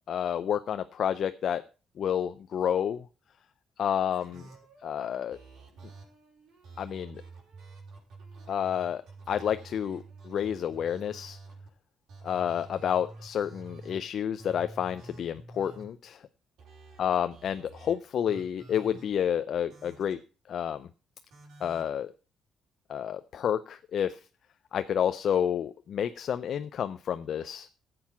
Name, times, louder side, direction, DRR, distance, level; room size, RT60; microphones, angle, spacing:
voice 1, 0.1-1.6 2.0-3.1 3.8-4.5 4.8-5.4 6.8-7.2 8.5-11.4 12.2-16.2 17.0-20.2 20.5-20.9 21.6-22.1 22.9-24.2 24.7-27.7, left 9 dB, 65° left, 11 dB, 0.5 m, -30 dB
sound 1, 4.1-11.7 12.1-14.0 14.4-15.9 16.6-17.9 18.3-19.0 19.7-20.1 21.3-21.9, right 3 dB, 75° right, 5.3 m, -49 dB
13.5 x 7.8 x 5.8 m, 0.35 s
cardioid pair, 90°, 0 cm